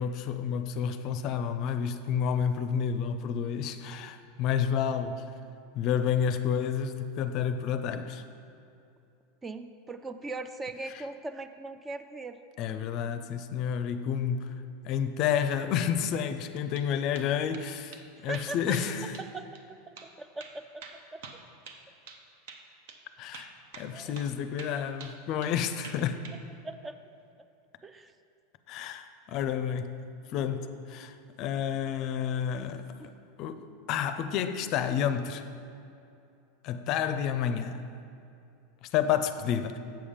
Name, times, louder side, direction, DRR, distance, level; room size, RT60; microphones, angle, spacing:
voice 1, 0.0-5.1 5.7-8.2 10.9-11.0 12.6-19.1 23.2-26.2 28.7-29.9 30.3-33.1 33.4-35.4 36.6-37.9 38.8-39.8, left 8 dB, 45° left, 0.4 m, -30 dB
voice 2, 9.4-12.4 18.2-18.8 19.2-20.8 21.1-21.2 23.9-24.1 26.6-27.0 27.8-28.1 33.0-33.1, right 2 dB, 15° right, 0.3 m, -40 dB
sound 1, 16.5-16.9 17.1-17.7 17.9-18.0 18.3-18.9 19.1-19.3 19.5-19.6 20.0-20.1 20.4-22.2 22.5-22.6 22.9-23.0 23.3-23.9 24.1-24.3 24.6-25.6 25.8-26.4, right 5 dB, 70° right, 0.7 m, -46 dB
7.6 x 5.4 x 5.1 m
supercardioid pair, 130°, 0 cm